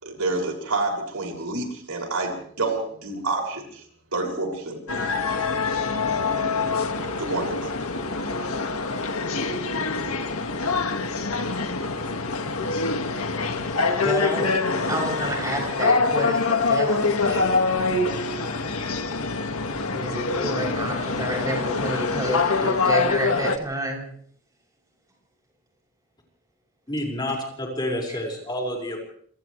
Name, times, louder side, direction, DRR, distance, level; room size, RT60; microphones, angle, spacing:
voice 1, 0.0-3.8 4.1-5.1 7.2-7.7, right 2 dB, 90° right, 1 dB, 6.6 m, -28 dB
sound 1, 4.9-23.6, left 4 dB, 80° left, 2.0 m, -25 dB
voice 2, 14.0-17.6 19.9-24.0, right 1 dB, 15° right, -1 dB, 8.0 m, -29 dB
voice 3, 26.9-29.0, left 1 dB, 20° left, -1 dB, 5.7 m, -29 dB
28.0 x 27.5 x 3.4 m, 0.62 s
head